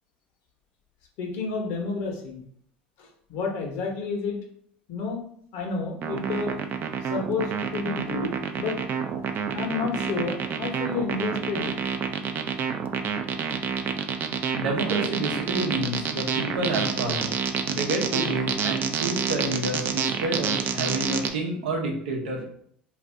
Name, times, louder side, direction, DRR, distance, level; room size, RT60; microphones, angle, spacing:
voice 1, 1.2-2.4 3.0-4.4 4.9-5.2 5.5-6.5 7.1-8.8 9.5-11.7, left 4 dB, 65° left, 2 dB, 0.9 m, -30 dB
sound 1, 6.0-21.3, right 7 dB, 40° right, 0.4 m, -28 dB
voice 2, 14.5-17.3 17.7-22.5, right 2 dB, 80° right, 1 dB, 0.8 m, -29 dB
2.5 x 2.5 x 3.2 m, 0.63 s
hypercardioid pair, 80°, 5 cm